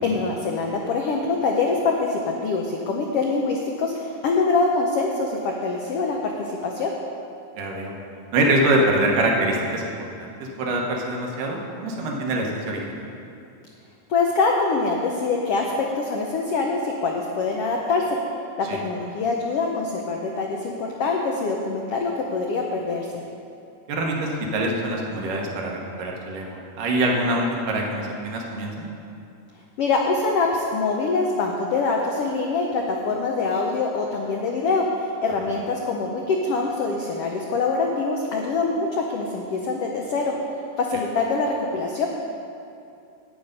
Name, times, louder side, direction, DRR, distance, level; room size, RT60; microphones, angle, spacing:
voice 1, 0.0-6.9 14.1-18.2 18.6-23.1 29.8-40.3 40.8-42.1, left 3 dB, 85° left, 0 dB, 1.3 m, -24 dB
voice 2, 7.6-7.9 8.3-9.9 10.2-13.0 18.6-18.8 23.9-28.9, right 1 dB, 90° right, 0 dB, 2.9 m, -24 dB
10.5 x 8.8 x 5.2 m, 2.6 s
omnidirectional pair, 3.7 m